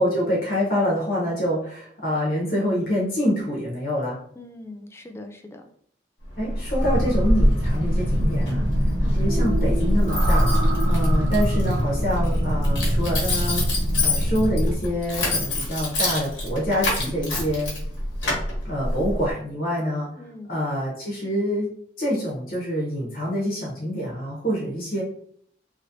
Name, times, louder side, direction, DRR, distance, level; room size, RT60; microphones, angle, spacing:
voice 1, 0.0-4.2 6.4-8.6 9.1-10.5 10.8-13.7 14.0-17.7 18.6-20.1 20.5-21.7 22.0-25.0, equal, 50° left, -4 dB, 1.0 m, -26 dB
voice 2, 4.4-5.7 8.4-8.8 20.2-20.5, left 2 dB, 15° left, 3 dB, 0.3 m, -41 dB
Keys jangling, 6.2-19.3, left 1 dB, 80° left, 1.2 m, -26 dB
sound 1, 6.8-14.8, equal, 65° right, 0.6 m, -23 dB
3.0 x 2.8 x 2.6 m, 0.62 s
head